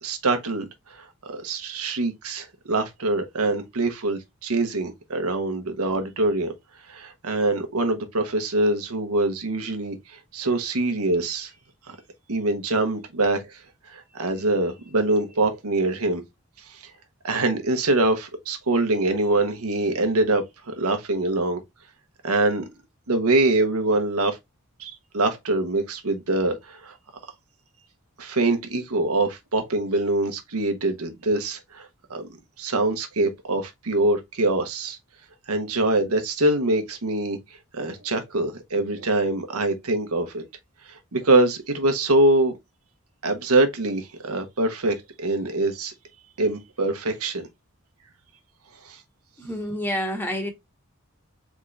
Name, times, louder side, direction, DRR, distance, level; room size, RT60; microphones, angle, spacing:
voice 1, 0.0-6.5 6.9-11.5 11.9-12.0 12.3-13.6 13.9-16.2 16.6-16.8 17.2-21.6 22.2-22.6 23.1-24.4 24.8-26.9 28.2-32.3 32.6-35.0 35.5-37.4 37.7-40.4 40.8-42.5 43.2-45.9 46.4-47.5 48.8-49.0, right 2 dB, 85° right, 1.0 m, -24 dB
voice 2, 49.4-50.5, equal, 10° left, 1.0 m, -28 dB
3.8 x 3.6 x 3.2 m
head